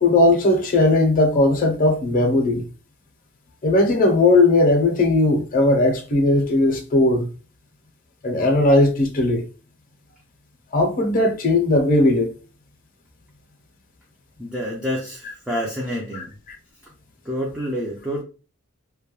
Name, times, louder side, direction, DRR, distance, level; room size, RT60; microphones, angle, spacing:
voice 1, 0.0-2.6 3.6-7.3 8.2-9.4 10.7-12.3 16.1-16.2, left 2 dB, 40° left, 0.6 m, -18 dB
voice 2, 14.4-16.3 17.3-18.2, equal, 5° right, 0.4 m, -28 dB
2.2 x 2.1 x 2.9 m
head